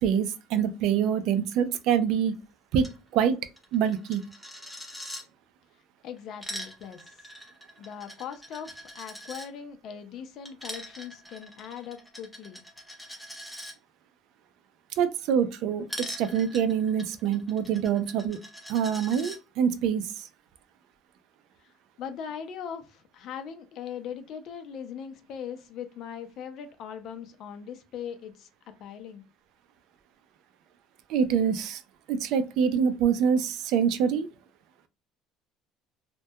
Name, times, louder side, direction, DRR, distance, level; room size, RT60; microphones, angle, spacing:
voice 1, 0.0-2.3 2.7-3.4 3.7-4.2 15.0-18.4 18.7-20.3 31.1-31.8 32.1-34.3, right 8 dB, 70° right, 0.4 m, -25 dB
Coin (dropping), 2.8-3.0 3.2-3.3 3.6-5.2 6.2-9.5 10.4-13.7 15.9-19.4, equal, 5° left, 0.6 m, -42 dB
voice 2, 6.0-7.1 7.8-12.6 22.0-28.5 28.8-29.2, left 8 dB, 55° left, 0.5 m, -40 dB
2.2 x 2.1 x 2.7 m
cardioid pair, 125°, 0 cm